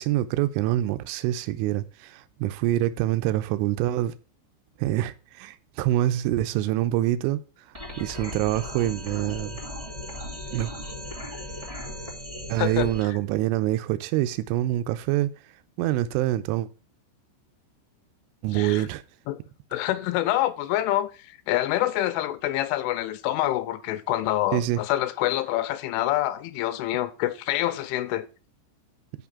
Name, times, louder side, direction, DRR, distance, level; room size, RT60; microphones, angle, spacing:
voice 1, 0.0-4.1 4.8-7.4 8.0-9.6 10.5-10.7 12.5-15.3 15.8-16.7 18.4-19.0 24.5-24.8, right 14 dB, 85° right, 3.1 m, -25 dB
sound 1, 7.7-13.0, left 1 dB, 20° right, 1.0 m, -37 dB
voice 2, 12.6-12.9 18.5-18.9 19.3-19.4 19.7-21.1 21.5-28.3, left 14 dB, 85° left, 3.1 m, -26 dB
6.5 x 6.1 x 7.0 m
omnidirectional pair, 5.7 m